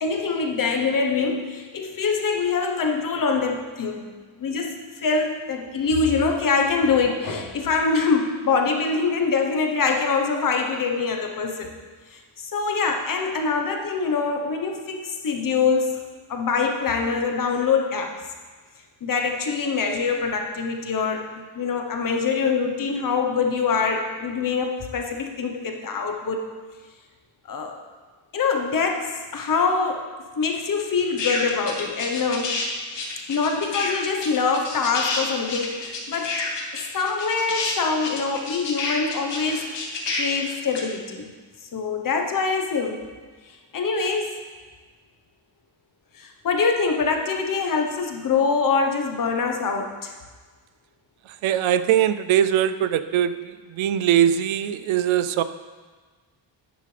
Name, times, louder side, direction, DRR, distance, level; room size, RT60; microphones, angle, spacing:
voice 1, 0.0-4.1 4.4-11.7 12.1-16.0 16.3-18.1 19.0-21.3 21.5-26.4 27.5-27.8 28.3-30.0 30.4-32.6 33.3-36.4 36.7-39.7 40.2-41.3 41.7-43.0 43.7-44.4 46.1-50.1, left 4 dB, 45° left, 3 dB, 1.1 m, -24 dB
sound 1, 31.2-32.7 32.9-40.8, left 3 dB, 65° left, 1.7 m, -29 dB
voice 2, 51.4-53.3 53.8-55.4, right 10 dB, 85° right, 12 dB, 0.6 m, -21 dB
10.5 x 9.1 x 3.4 m, 1.4 s
wide cardioid pair, 180°, 46 cm